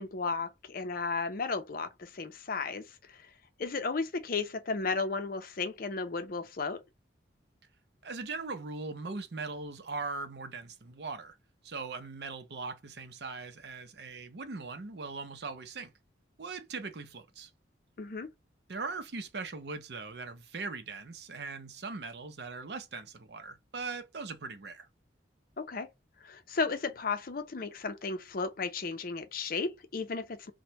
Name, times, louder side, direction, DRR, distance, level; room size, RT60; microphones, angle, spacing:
voice 1, 0.0-2.9 3.6-6.8 18.0-18.3 25.6-25.9 26.2-30.5, left 4 dB, 50° left, 0.5 m, -34 dB
voice 2, 8.0-11.4 11.6-15.9 16.4-17.5 18.7-24.9, right 4 dB, 60° right, 0.6 m, -40 dB
3.1 x 2.1 x 2.8 m
head